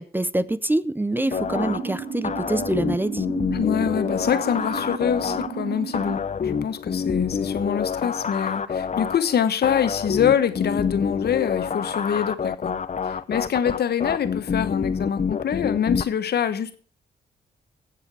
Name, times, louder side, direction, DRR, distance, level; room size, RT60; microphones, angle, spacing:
voice 1, 0.0-3.3, right 1 dB, 10° right, 0.6 m, -25 dB
sound 1, 1.1-6.1, right 6 dB, 60° right, 1.5 m, -34 dB
sound 2, 1.3-16.0, left 6 dB, 40° left, 0.8 m, -28 dB
voice 2, 3.5-12.7 13.0-16.7, left 8 dB, 65° left, 1.2 m, -25 dB
16.0 x 7.6 x 4.8 m
supercardioid pair, 60°, 18 cm